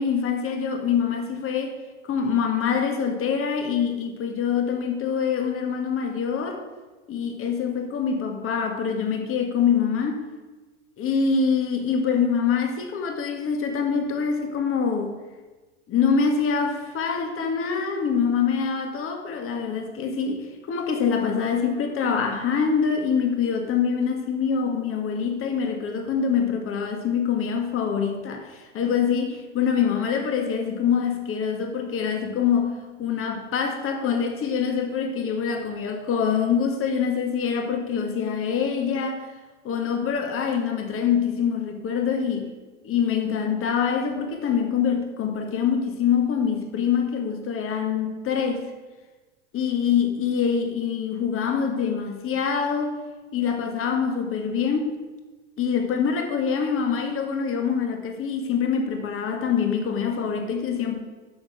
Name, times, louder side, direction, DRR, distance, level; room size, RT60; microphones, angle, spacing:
voice 1, 0.0-1.8 2.0-6.6 7.1-10.2 11.0-15.1 15.9-32.7 33.0-39.3 39.6-42.5 42.8-48.6 49.5-52.9 53.3-55.0 55.6-61.0, left 6 dB, 35° left, 5 dB, 1.8 m, -25 dB
10.5 x 6.4 x 6.3 m, 1.3 s
hypercardioid pair, 110°, 38 cm